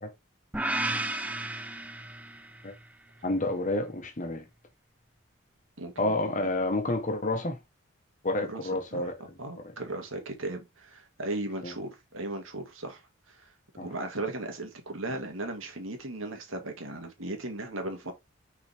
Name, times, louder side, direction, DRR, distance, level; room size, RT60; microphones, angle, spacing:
sound 1, 0.5-2.7, right 2 dB, 5° right, 0.5 m, -33 dB
voice 1, 3.2-4.4 6.0-7.6 8.2-9.1 11.6-11.7 13.8-13.9, left 2 dB, 35° left, 1.2 m, -29 dB
voice 2, 5.8-6.4 8.4-9.1 9.4-13.0 13.3-13.5 13.8-18.1, right 2 dB, 70° right, 2.0 m, -37 dB
5.5 x 4.9 x 3.4 m
head